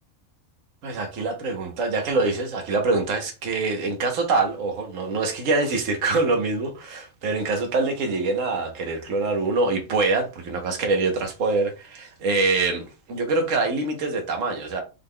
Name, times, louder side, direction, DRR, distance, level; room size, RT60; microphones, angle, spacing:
voice 1, 0.8-14.8, right 3 dB, 70° right, 1.3 m, -24 dB
5.5 x 3.6 x 2.3 m
omnidirectional pair, 1.4 m